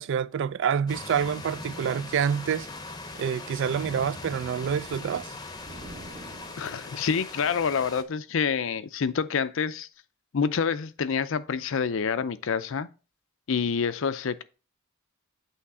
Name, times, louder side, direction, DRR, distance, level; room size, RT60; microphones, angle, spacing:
voice 1, 0.0-2.7 3.1-5.3, right 7 dB, 65° right, 0.3 m, -27 dB
sound 1, 0.9-8.0, left 3 dB, 20° left, 0.7 m, -40 dB
sound 2, 5.6-7.1, right 1 dB, 35° right, 0.7 m, -46 dB
voice 2, 6.6-9.9 10.3-12.9 13.5-14.4, left 6 dB, 70° left, 0.5 m, -27 dB
8.4 x 3.2 x 4.7 m
head